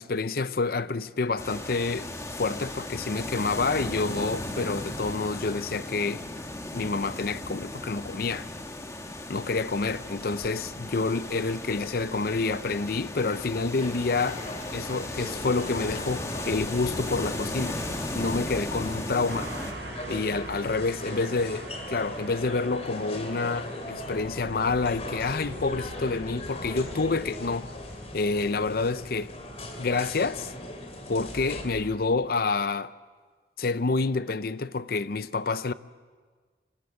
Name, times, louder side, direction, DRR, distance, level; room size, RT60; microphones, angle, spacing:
voice 1, 0.0-2.1 2.4-6.2 6.7-8.5 9.3-14.4 14.7-17.8 18.1-19.5 20.1-21.6 21.9-27.7 28.1-29.4 29.8-30.5 31.1-32.9 33.6-35.7, left 3 dB, 55° left, 0.6 m, -28 dB
sound 1, 1.4-19.7, left 1 dB, 15° left, 1.6 m, -36 dB
sound 2, 13.8-31.6, left 1 dB, 35° left, 2.7 m, -39 dB
sound 3, 19.3-31.9, right 1 dB, 85° right, 3.6 m, -44 dB
25.0 x 15.0 x 9.8 m
head